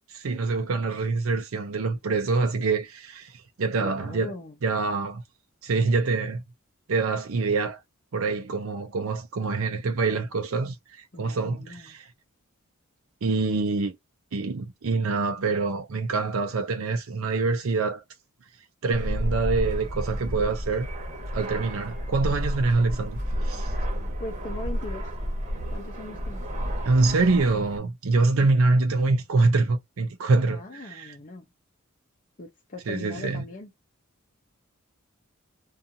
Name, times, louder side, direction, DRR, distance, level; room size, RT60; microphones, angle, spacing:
voice 1, 0.1-4.3 4.6-5.2 5.6-6.4 6.9-7.8 8.1-12.1 13.2-13.9 14.3-18.0 18.8-20.9 21.3-23.7 26.8-31.2 32.9-33.4, right 3 dB, 75° right, 0.5 m, -25 dB
voice 2, 3.8-4.5 11.1-11.9 24.2-25.1 25.7-26.4 30.5-31.5 32.4-33.7, left 2 dB, 40° left, 0.5 m, -40 dB
Fixed-wing aircraft airplane, 18.9-27.8, equal, 35° right, 0.9 m, -31 dB
2.6 x 2.4 x 2.6 m
head